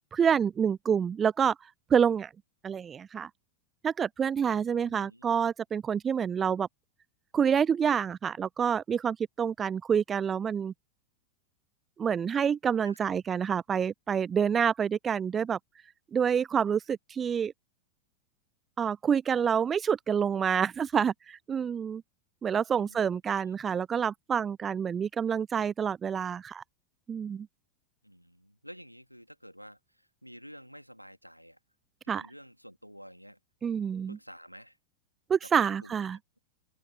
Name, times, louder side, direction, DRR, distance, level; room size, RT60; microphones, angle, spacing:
voice 1, 0.1-1.5 1.9-2.3 2.6-3.3 3.8-6.7 7.3-10.7 12.0-15.6 16.1-17.5 18.8-22.0 22.4-26.6 27.1-27.5 32.1-32.2 33.6-34.2 35.3-36.2, right 7 dB, 20° right, 0.4 m, -27 dB
voice 2, 4.7-5.4 12.8-13.0 22.7-23.6 28.0-31.6 32.0-33.4 34.1-34.8 35.4-36.4, equal, 90° right, 3.1 m, -51 dB
open air
figure-of-eight pair, 90°, 0 cm